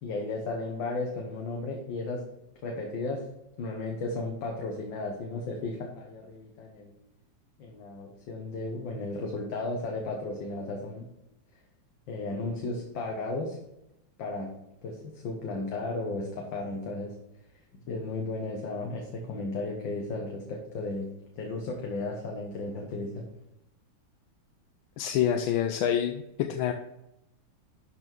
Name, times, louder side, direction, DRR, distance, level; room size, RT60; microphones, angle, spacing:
voice 1, 0.0-2.2 2.6-3.2 3.6-6.9 7.6-11.1 12.1-13.6 14.2-14.5 14.8-17.1 17.9-21.1 21.4-23.3, left 2 dB, 75° left, 0 dB, 1.9 m, -34 dB
voice 2, 25.0-26.2 26.5-26.7, left 9 dB, 90° left, 5 dB, 1.4 m, -26 dB
12.0 x 4.2 x 4.5 m, 0.86 s
omnidirectional pair, 2.1 m